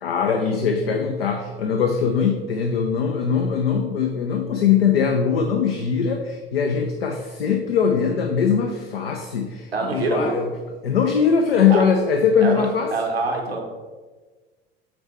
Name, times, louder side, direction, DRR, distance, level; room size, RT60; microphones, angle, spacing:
voice 1, 0.0-10.5 10.8-12.9, left 6 dB, 80° left, 4 dB, 0.6 m, -21 dB
voice 2, 9.7-10.4 11.7-11.8 12.4-13.6, right 3 dB, 85° right, 1 dB, 1.1 m, -25 dB
7.5 x 4.1 x 4.2 m, 1.3 s
figure-of-eight pair, 65°, 30 cm